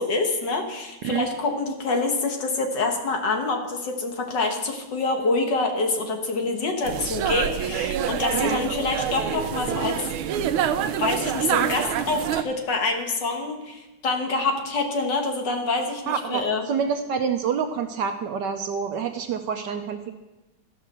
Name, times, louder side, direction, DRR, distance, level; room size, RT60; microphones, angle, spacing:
voice 1, 0.0-10.1 11.0-16.7, left 3 dB, 60° left, 3 dB, 1.9 m, -26 dB
sound 1, 6.8-12.4, right 9 dB, 85° right, 1.5 m, -26 dB
voice 2, 16.1-20.1, right 7 dB, 70° right, 7 dB, 1.1 m, -27 dB
14.5 x 5.4 x 6.6 m, 1.1 s
omnidirectional pair, 2.2 m